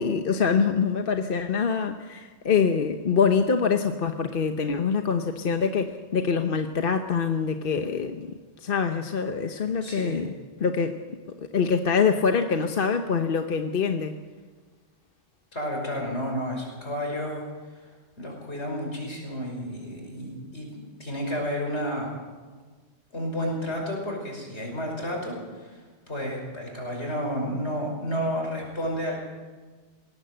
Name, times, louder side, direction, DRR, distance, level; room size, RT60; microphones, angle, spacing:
voice 1, 0.0-10.3 10.6-11.0 11.5-14.2, left 6 dB, 55° left, 6 dB, 1.1 m, -25 dB
voice 2, 9.8-10.3 15.5-17.4 17.8-17.9 18.2-20.7 21.0-22.1 23.1-29.2, equal, 75° left, 1 dB, 5.8 m, -31 dB
20.0 x 17.0 x 7.9 m, 1.4 s
omnidirectional pair, 1.2 m